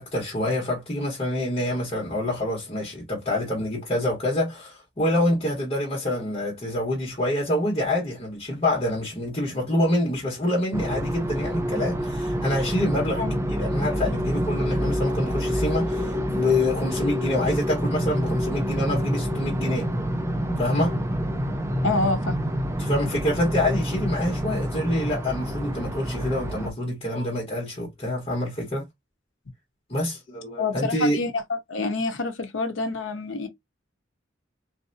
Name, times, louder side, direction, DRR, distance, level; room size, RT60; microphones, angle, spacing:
voice 1, 0.0-19.9 20.6-21.0 22.7-28.8 29.9-31.2, left 1 dB, 30° left, 1.4 m, -26 dB
sound 1, 10.7-26.7, equal, 15° right, 0.4 m, -27 dB
voice 2, 21.8-22.4 30.6-31.3 31.7-33.5, left 3 dB, 75° left, 0.8 m, -27 dB
3.3 x 2.6 x 2.6 m
head